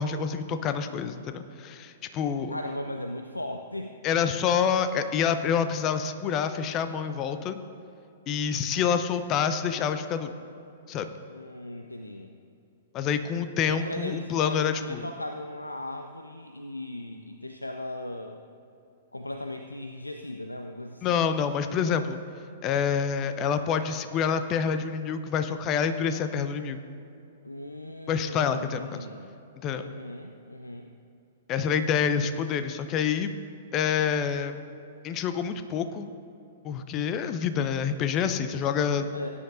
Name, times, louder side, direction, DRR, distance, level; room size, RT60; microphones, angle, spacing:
voice 1, 0.0-2.5 4.0-7.6 8.3-10.3 10.9-11.1 12.9-15.1 21.0-22.2 22.6-26.8 28.1-29.1 29.6-29.8 31.5-33.3 33.7-34.6 35.0-36.1 36.6-39.1, left 7 dB, 30° left, 10 dB, 0.6 m, -27 dB
voice 2, 2.5-4.0 11.3-12.4 13.6-18.4 19.1-21.3 27.4-29.3 29.8-30.9 39.1-39.3, left 1 dB, 85° left, 5 dB, 0.5 m, -37 dB
17.5 x 9.6 x 2.6 m, 2.8 s
figure-of-eight pair, 110°, 0 cm